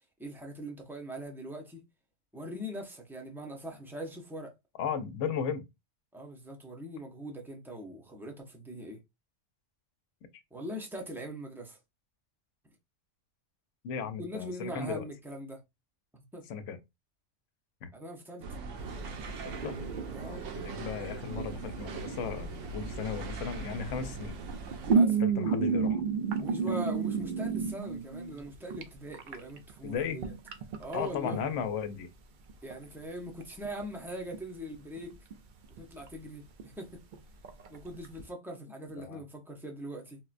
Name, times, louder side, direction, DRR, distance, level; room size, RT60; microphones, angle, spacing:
voice 1, 0.2-1.8 2.3-4.5 6.1-9.0 10.5-11.8 14.2-15.6 16.1-16.4 17.9-18.5 20.1-20.5 24.9-25.3 26.4-30.3 30.8-31.4 32.6-35.1 35.7-37.0 37.7-40.2, equal, 5° right, 0.3 m, -41 dB
voice 2, 4.8-5.6 10.3-10.4 13.8-15.0 16.5-16.8 17.8-17.9 19.5-19.8 20.2-24.4 25.2-26.0 29.8-30.2 30.9-32.1 39.0-39.2, left 7 dB, 85° left, 0.9 m, -35 dB
sound 1, 18.4-24.9, right 4 dB, 90° right, 0.9 m, -40 dB
sound 2, 18.8-21.1 21.4-23.3 24.3-28.8 29.1-31.4 32.5-32.7 33.0-33.1 33.4-34.0 34.3-34.4 34.7-35.3 35.8-36.3 36.6-36.7 37.1-37.2 37.4-38.2, right 5 dB, 55° right, 0.5 m, -31 dB
4.2 x 2.1 x 2.4 m
omnidirectional pair, 1.2 m